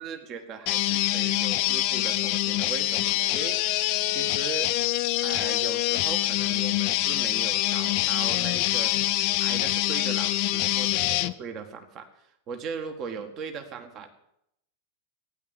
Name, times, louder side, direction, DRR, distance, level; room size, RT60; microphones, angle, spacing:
voice 1, 0.0-3.6 4.1-4.7 5.2-9.0 9.4-14.1, right 5 dB, 35° right, 7 dB, 1.8 m, -38 dB
sound 1, 0.7-11.3, left 16 dB, 45° left, 0.6 m, -25 dB
15.0 x 10.0 x 7.9 m, 0.77 s
figure-of-eight pair, 90°, 0 cm